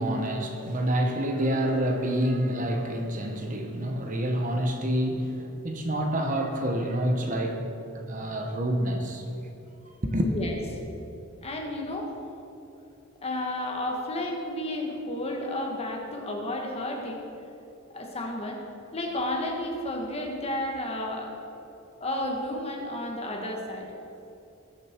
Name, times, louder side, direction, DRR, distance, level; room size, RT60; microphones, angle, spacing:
voice 1, 0.0-9.2 10.0-10.3, equal, 40° right, 3 dB, 1.1 m, -27 dB
voice 2, 10.2-10.5 11.4-12.1 13.2-17.2 17.9-18.6 18.9-21.3 22.0-23.9, left 1 dB, 30° left, 1 dB, 1.6 m, -32 dB
20.0 x 6.7 x 4.5 m, 2.9 s
head